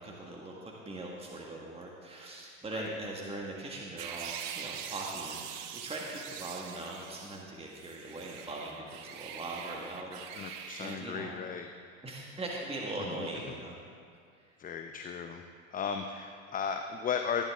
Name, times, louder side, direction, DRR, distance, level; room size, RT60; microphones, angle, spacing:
voice 1, 0.0-11.4 12.0-13.8 14.3-14.6, right 2 dB, 15° right, -2 dB, 1.5 m, -41 dB
sound 1, 4.0-7.4 7.7-11.0, right 9 dB, 60° right, 1.0 m, -43 dB
voice 2, 10.3-11.7 13.0-13.3 14.6-15.4 15.7-17.4, left 6 dB, 20° left, 6 dB, 0.6 m, -36 dB
16.0 x 10.0 x 3.5 m, 2.2 s
hypercardioid pair, 80°, 40 cm